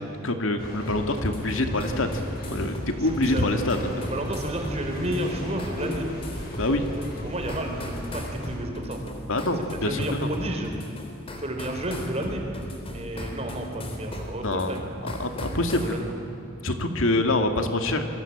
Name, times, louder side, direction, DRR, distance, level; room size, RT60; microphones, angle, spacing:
voice 1, 0.2-2.2 2.5-3.8 6.6-6.8 9.3-10.3 14.4-14.7 15.0-16.0 16.6-18.1, left 2 dB, 70° left, 6 dB, 2.3 m, -25 dB
sound 1, 0.6-8.6, left 1 dB, 45° left, 7.2 m, -36 dB
sound 2, 0.9-16.0, equal, 25° left, 3.5 m, -38 dB
voice 2, 3.0-3.4 4.0-6.1 6.8-9.0 9.6-10.7 11.4-12.4 12.9-14.9 15.7-16.1, right 1 dB, 30° right, 2 dB, 4.5 m, -31 dB
29.0 x 22.5 x 8.8 m, 2.9 s
head